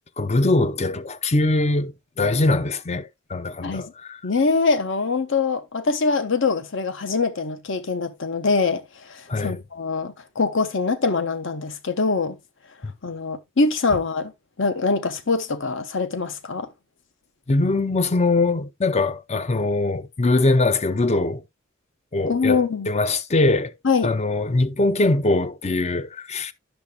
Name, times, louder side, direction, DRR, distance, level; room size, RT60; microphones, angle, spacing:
voice 1, 0.2-4.2 9.3-9.6 12.8-12.9 17.5-21.4 22.1-23.7 24.0-26.5, left 2 dB, 35° left, 0.6 m, -22 dB
voice 2, 3.6-3.9 4.2-12.4 13.0-14.3 14.6-16.7 22.2-22.9 23.8-24.1, left 4 dB, 65° left, 1.0 m, -23 dB
10.0 x 6.8 x 2.3 m
head